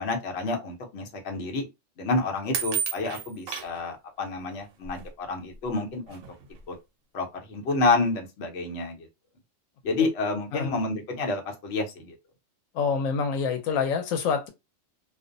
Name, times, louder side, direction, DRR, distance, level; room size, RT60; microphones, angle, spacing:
voice 1, 0.0-1.7 2.0-6.2 6.7-6.8 7.1-9.1 9.8-12.1, left 3 dB, 60° left, 0.9 m, -29 dB
sound 1, 2.5-3.8 4.9-5.0 5.7-5.8 6.1-6.5, right 8 dB, 80° right, 1.0 m, -31 dB
voice 2, 12.7-14.5, left 5 dB, 85° left, 1.0 m, -26 dB
2.5 x 2.1 x 2.5 m
omnidirectional pair, 1.4 m